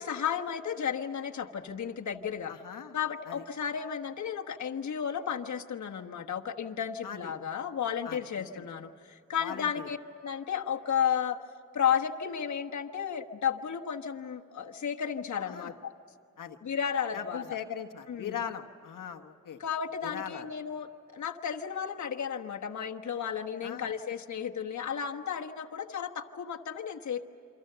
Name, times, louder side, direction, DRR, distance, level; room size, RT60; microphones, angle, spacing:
voice 1, 0.0-2.5 2.9-11.4 11.7-15.9 16.6-17.6 18.1-18.4 19.6-27.2, left 8 dB, 65° left, 2 dB, 1.4 m, -33 dB
voice 2, 2.5-3.0 3.3-3.4 7.0-7.3 8.0-8.6 9.4-9.9 15.4-15.7 16.4-16.6 17.1-19.6 20.0-20.4 23.6-23.8, left 8 dB, 90° left, 4 dB, 1.3 m, -40 dB
28.5 x 24.5 x 6.8 m, 2.6 s
cardioid pair, 85°, 31 cm